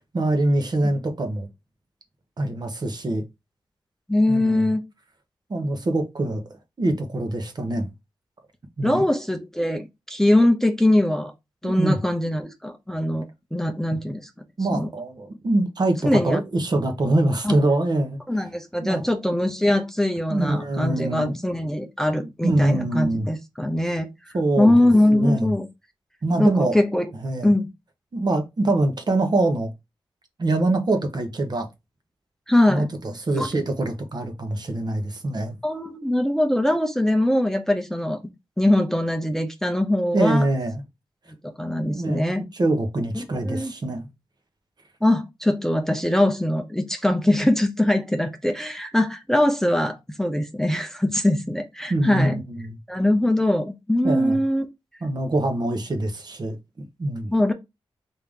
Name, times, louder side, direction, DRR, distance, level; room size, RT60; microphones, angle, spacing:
voice 1, 0.0-1.5 2.4-3.2 4.3-4.7 5.5-6.4 6.8-7.9 8.8-9.0 11.6-12.0 14.6-18.2 18.8-19.0 20.3-21.4 22.2-23.3 24.3-25.5 26.2-26.7 27.2-27.5 28.1-29.7 30.4-31.7 32.7-35.6 40.1-40.8 41.9-42.3 42.5-44.1 51.9-52.8 54.0-54.4 55.0-57.3, right 2 dB, 50° right, 0.9 m, -24 dB
voice 2, 4.1-4.8 8.8-11.3 11.6-13.3 13.5-14.2 14.7-14.9 16.0-16.4 17.4-17.5 18.3-24.1 24.6-25.7 26.4-27.1 27.4-27.7 32.5-32.9 33.3-33.5 35.6-38.2 38.6-40.4 41.4-42.4 43.4-43.7 45.0-52.4 52.9-54.7 57.3-57.5, left 1 dB, 5° left, 0.6 m, -22 dB
3.5 x 2.8 x 3.6 m
cardioid pair, 55°, 9 cm